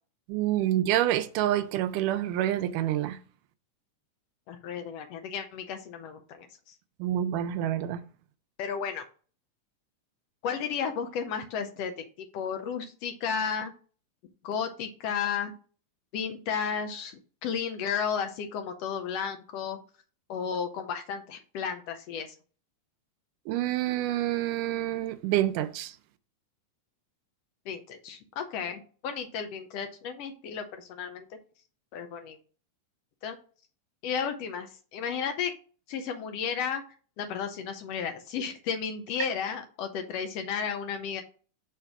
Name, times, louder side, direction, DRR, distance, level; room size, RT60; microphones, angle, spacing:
voice 1, 0.3-3.2 7.0-8.0 23.5-25.9, right 13 dB, 85° right, 2.1 m, -27 dB
voice 2, 4.5-6.5 8.6-9.0 10.4-11.9 12.2-13.7 14.4-15.5 16.1-19.8 20.3-22.3 27.7-31.2 31.9-32.4 33.2-33.3 34.0-35.5 35.9-36.8 37.2-41.2, left 7 dB, 80° left, 1.4 m, -33 dB
6.5 x 3.3 x 5.8 m
omnidirectional pair, 3.7 m